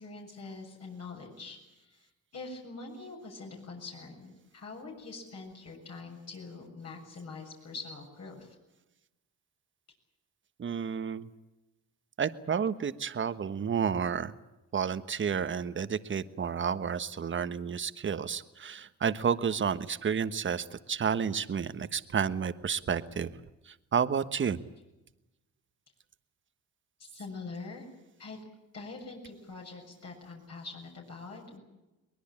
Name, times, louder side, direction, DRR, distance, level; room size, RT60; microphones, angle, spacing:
voice 1, 0.0-8.6 27.0-27.9 28.2-28.4 28.7-31.6, left 3 dB, 55° left, 0 dB, 7.1 m, -44 dB
voice 2, 10.6-11.3 12.2-14.3 14.7-23.3 23.7-24.6, right 7 dB, 40° right, 12 dB, 1.4 m, -31 dB
23.0 x 20.5 x 8.8 m, 1.0 s
cardioid pair, 90°, 30 cm